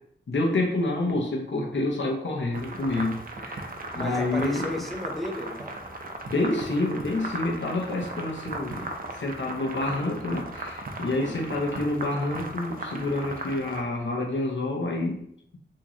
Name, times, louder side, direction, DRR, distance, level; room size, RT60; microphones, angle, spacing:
voice 1, 0.3-3.7 4.0-4.7 6.3-8.9 9.2-15.3, left 2 dB, 70° left, 0 dB, 0.7 m, -28 dB
sound 1, 2.5-13.8, right 2 dB, 45° right, 0.5 m, -37 dB
voice 2, 3.9-5.8 11.1-11.5, left 1 dB, ahead, 2 dB, 0.6 m, -34 dB
3.0 x 2.7 x 3.6 m, 0.70 s
wide cardioid pair, 85°, 20 cm